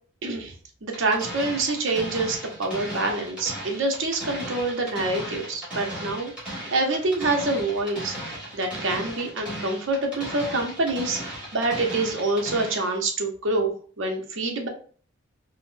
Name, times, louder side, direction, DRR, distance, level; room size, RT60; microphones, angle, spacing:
voice 1, 0.2-0.5 0.8-14.7, right 2 dB, 65° right, 2 dB, 0.7 m, -26 dB
sound 1, 0.9-12.9, right 1 dB, 5° right, 1.3 m, -36 dB
4.0 x 2.0 x 2.5 m, 0.43 s
head